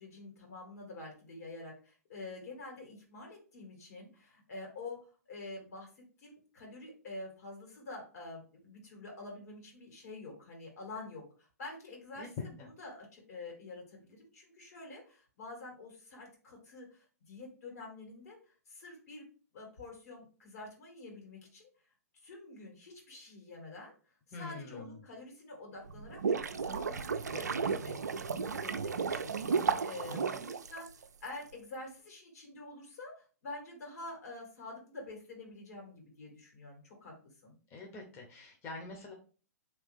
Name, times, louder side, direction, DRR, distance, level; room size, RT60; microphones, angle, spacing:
voice 1, 0.0-5.0 5.3-12.3 12.8-19.2 19.5-21.7 22.1-29.5 29.8-37.1 37.4-37.6, left 2 dB, 65° left, 0 dB, 2.1 m, -47 dB
voice 2, 12.2-12.7 24.3-25.0 30.1-30.4 37.7-39.1, left 4 dB, 30° left, 0 dB, 0.9 m, -45 dB
sound 1, 25.9-31.3, right 5 dB, 85° right, 0.4 m, -33 dB
3.3 x 3.2 x 3.4 m, 0.38 s
hypercardioid pair, 120°, 9 cm